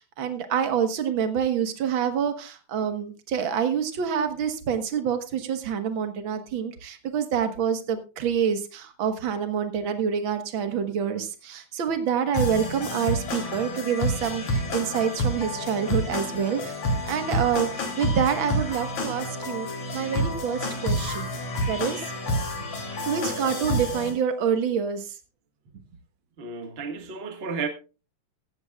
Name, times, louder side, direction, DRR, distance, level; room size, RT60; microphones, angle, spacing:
voice 1, 0.0-16.7 17.1-19.7 19.9-21.3 21.7-22.0 22.6-22.7 23.0-25.1, right 8 dB, 60° right, 1.3 m, -27 dB
sound 1, 12.3-24.1, left 1 dB, 55° left, 4.1 m, -29 dB
voice 2, 26.4-27.7, right 5 dB, 75° right, 0.5 m, -32 dB
15.5 x 14.0 x 2.4 m
omnidirectional pair, 4.1 m